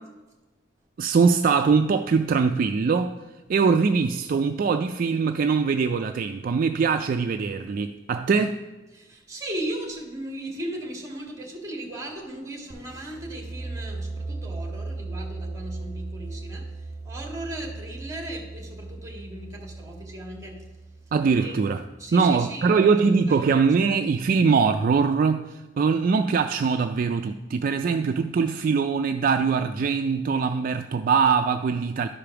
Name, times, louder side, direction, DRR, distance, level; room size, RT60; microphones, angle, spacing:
voice 1, 1.0-3.1 3.5-8.6 21.1-21.8 22.1-25.4 25.8-32.1, right 5 dB, 45° right, 0.3 m, -22 dB
voice 2, 8.9-20.6 21.4-21.6 22.0-22.8 23.3-23.5, right 1 dB, 20° right, 1.8 m, -37 dB
sound 1, 12.7-22.3, right 3 dB, 5° left, 1.3 m, -37 dB
11.5 x 5.1 x 5.8 m
head